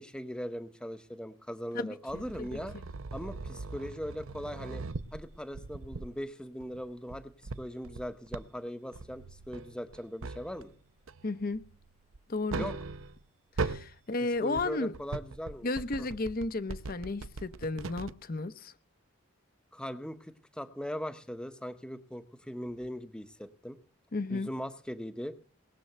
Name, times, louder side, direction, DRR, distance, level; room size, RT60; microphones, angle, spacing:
voice 1, 0.0-2.7 3.1-4.8 5.1-7.3 7.6-10.7 12.5-12.7 14.4-16.1 19.7-23.8 24.3-25.3, equal, 5° left, 0.8 m, -40 dB
voice 2, 1.7-2.6 11.2-11.6 12.3-12.7 13.6-14.9 15.6-18.7 24.1-24.5, left 3 dB, 45° left, 0.7 m, -34 dB
sound 1, 2.1-6.2 6.6-8.5 8.9-10.8 11.1-13.3 13.6-13.9 14.4-18.1, right 3 dB, 85° right, 0.7 m, -40 dB
20.0 x 7.6 x 7.8 m
head